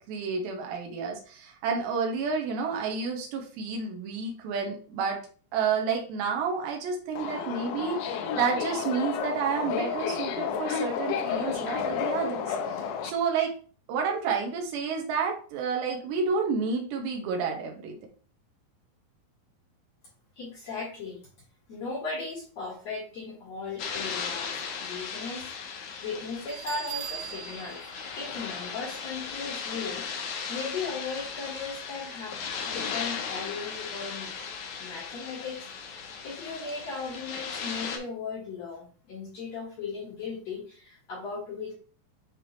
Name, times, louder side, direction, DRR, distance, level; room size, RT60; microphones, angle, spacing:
voice 1, 0.0-5.2 5.5-12.8 13.0-13.5 13.9-18.0, right 5 dB, 85° right, 1 dB, 3.5 m, -30 dB
Subway metro underground, 7.2-13.1, left 7 dB, 85° left, 3.0 m, -31 dB
voice 2, 20.4-21.2 21.7-27.8 28.2-30.1 30.5-32.3 32.7-34.3 34.8-35.6 36.2-41.7, left 4 dB, 55° left, -3 dB, 2.1 m, -37 dB
sound 1, 23.8-38.0, left 6 dB, 70° left, 1.9 m, -37 dB
Bell, 26.5-29.2, right 11 dB, 65° right, 1.2 m, -40 dB
9.8 x 3.5 x 3.1 m, 0.41 s
omnidirectional pair, 4.9 m